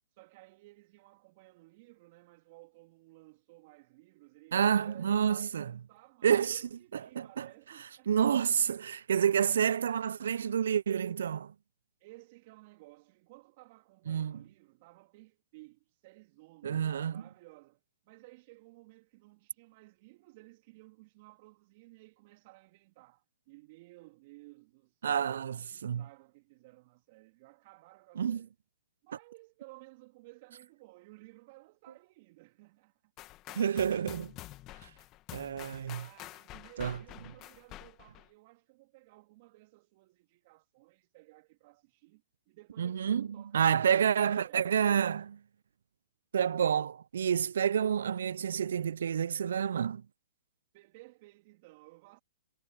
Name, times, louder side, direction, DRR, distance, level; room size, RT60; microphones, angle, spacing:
voice 1, 0.1-8.1 9.5-10.0 12.0-28.5 29.0-33.1 33.5-33.6 35.9-43.8 44.1-45.0 50.7-52.2, right 22 dB, 45° right, 2.6 m, -57 dB
voice 2, 4.5-5.7 6.2-6.6 7.1-7.5 8.1-11.5 14.1-14.4 16.6-17.2 25.0-26.0 28.2-28.4 33.6-34.3 34.8-34.9 35.3-36.0 36.8-37.0 42.8-43.3 43.5-45.3 46.3-50.0, right 8 dB, 70° right, 0.7 m, -29 dB
sound 1, 33.2-38.3, left 17 dB, 30° left, 1.9 m, -48 dB
hypercardioid pair, 120°, 0 cm